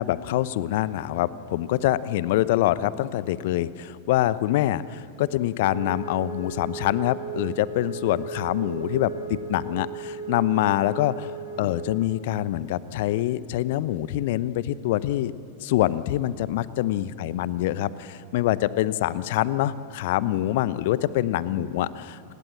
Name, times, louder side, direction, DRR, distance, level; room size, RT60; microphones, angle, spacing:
voice 1, 0.0-11.3 11.6-15.3 15.6-22.3, left 14 dB, 50° left, 17 dB, 0.9 m, -25 dB
Wind instrument woodwind instrument, 5.6-12.0, right 6 dB, 90° right, 4.1 m, -36 dB
30.0 x 20.5 x 8.7 m, 2.4 s
figure-of-eight pair, 90°, 0 cm